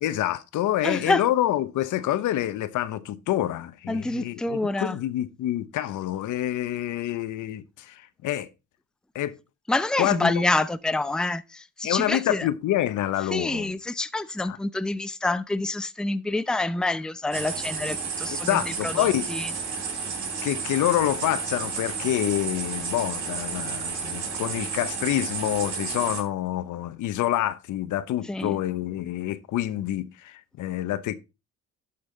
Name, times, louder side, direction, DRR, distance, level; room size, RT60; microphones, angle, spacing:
voice 1, 0.0-8.5 9.1-9.4 10.0-10.4 11.8-13.7 14.4-14.6 18.4-19.3 20.4-31.1, left 13 dB, 80° left, 1.0 m, -27 dB
voice 2, 0.8-1.2 3.9-5.0 9.7-12.5 13.3-18.6 18.8-19.5 28.3-28.6, left 2 dB, ahead, 0.5 m, -27 dB
sound 1, 17.3-26.2, right 5 dB, 75° right, 3.6 m, -32 dB
12.0 x 5.5 x 4.0 m
cardioid pair, 90°, 30 cm